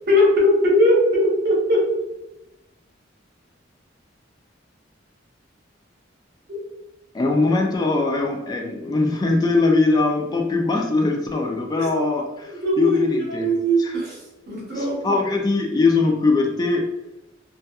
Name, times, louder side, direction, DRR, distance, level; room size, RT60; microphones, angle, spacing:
voice 1, 0.1-1.9 6.5-6.6 11.8-11.9 12.6-15.2, equal, 55° right, -4 dB, 0.9 m, -20 dB
voice 2, 7.1-13.5 13.8-13.9 14.8-16.9, left 3 dB, 20° left, 1 dB, 0.3 m, -21 dB
2.7 x 2.3 x 2.2 m, 0.93 s
head